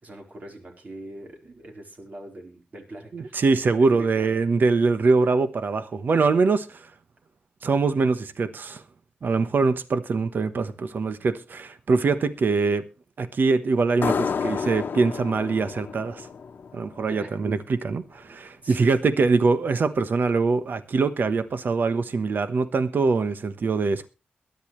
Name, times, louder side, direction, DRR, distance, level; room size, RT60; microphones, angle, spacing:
voice 1, 0.0-3.4 3.9-4.4 17.1-17.3 18.6-18.9, right 1 dB, 50° right, 4.1 m, -41 dB
voice 2, 3.1-6.9 7.6-8.8 9.2-12.8 13.2-16.3 16.7-24.1, right 4 dB, 70° right, 1.1 m, -23 dB
sound 1, 14.0-17.3, left 6 dB, 85° left, 1.0 m, -30 dB
22.0 x 10.5 x 3.2 m
wide cardioid pair, 105°, 3 cm